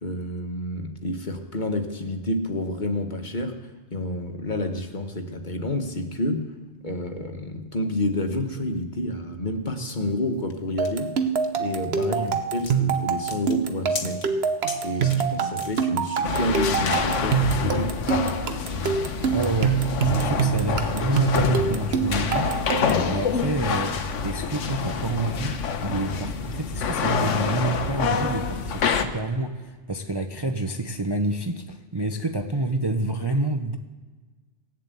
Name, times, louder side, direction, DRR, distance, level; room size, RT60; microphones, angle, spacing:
voice 1, 0.0-3.5 3.9-6.4 6.8-11.1 11.6-12.2 12.5-14.2 14.8-18.0, left 1 dB, 40° left, 6 dB, 1.3 m, -29 dB
sound 1, 9.9-16.1, left 4 dB, 65° left, 1.6 m, -40 dB
sound 2, 10.8-23.1, right 7 dB, 60° right, 1.1 m, -25 dB
voice 2, 11.9-12.4 19.0-33.8, right 2 dB, 25° right, 5 dB, 0.6 m, -28 dB
sound 3, 16.2-29.0, left 5 dB, 90° left, 1.3 m, -26 dB
18.5 x 7.5 x 8.2 m, 1.4 s
omnidirectional pair, 1.2 m